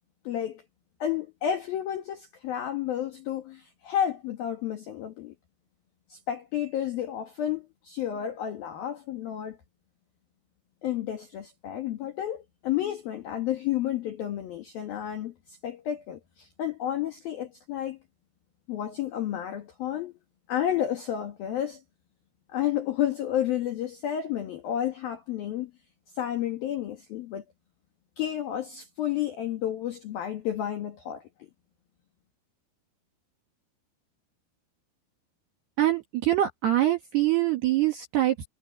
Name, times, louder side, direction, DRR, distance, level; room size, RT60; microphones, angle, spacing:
voice 1, 0.2-0.6 1.0-5.3 6.1-9.6 10.8-18.0 18.7-20.1 20.5-21.8 22.5-25.7 26.1-27.4 28.2-31.2, left 10 dB, 60° left, 3.1 m, -31 dB
voice 2, 35.8-38.5, right 14 dB, 60° right, 3.4 m, -24 dB
omnidirectional pair, 5.9 m